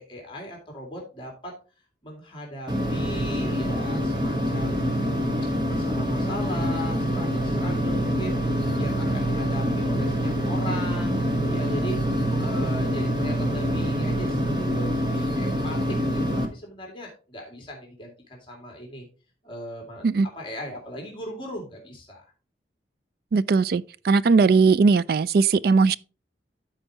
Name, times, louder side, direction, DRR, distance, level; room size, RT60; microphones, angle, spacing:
voice 1, 0.0-1.6 2.0-5.2 5.7-12.0 12.4-15.8 16.1-19.1 19.4-20.0 20.4-22.3, equal, 25° left, 2.2 m, -38 dB
sound 1, 2.7-16.5, equal, 25° right, 1.3 m, -25 dB
voice 2, 23.3-26.0, right 4 dB, 55° right, 0.3 m, -19 dB
13.5 x 4.5 x 2.9 m
head